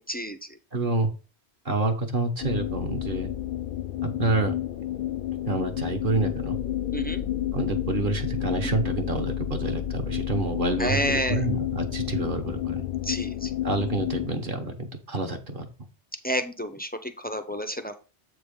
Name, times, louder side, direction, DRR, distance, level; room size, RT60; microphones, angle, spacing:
voice 1, 0.7-1.1 1.6-3.3 4.0-4.5 5.5-6.6 7.5-12.8 13.6-15.7, right 2 dB, 50° right, 3 dB, 1.1 m, -28 dB
sound 1, 2.4-14.3, left 11 dB, 55° left, 0.7 m, -30 dB
voice 2, 6.9-7.2 10.8-11.4 13.1-13.5 16.2-18.0, equal, 10° left, 7 dB, 0.4 m, -29 dB
7.7 x 3.7 x 5.1 m, 0.33 s
omnidirectional pair, 1.2 m